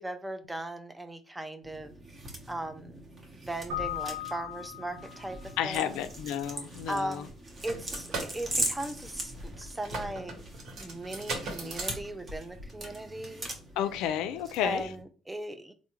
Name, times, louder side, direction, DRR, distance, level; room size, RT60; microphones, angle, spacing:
voice 1, 0.0-2.0 2.5-3.0 3.3-6.0 6.9-7.3 7.6-10.4 10.8-13.5 14.6-15.7, right 1 dB, 10° right, 9 dB, 0.4 m, -38 dB
sound 1, 1.6-15.0, right 1 dB, 30° right, 0.9 m, -40 dB
Keyboard (musical), 3.7-5.5, left 10 dB, 80° right, 0.6 m, -37 dB
voice 2, 5.6-7.3 11.6-11.7 13.8-14.9, left 10 dB, 80° left, 11 dB, 0.3 m, -31 dB
sound 2, 7.5-12.9, right 3 dB, 65° right, 1.0 m, -39 dB
3.5 x 2.1 x 2.9 m, 0.37 s
cardioid pair, 95°, 0 cm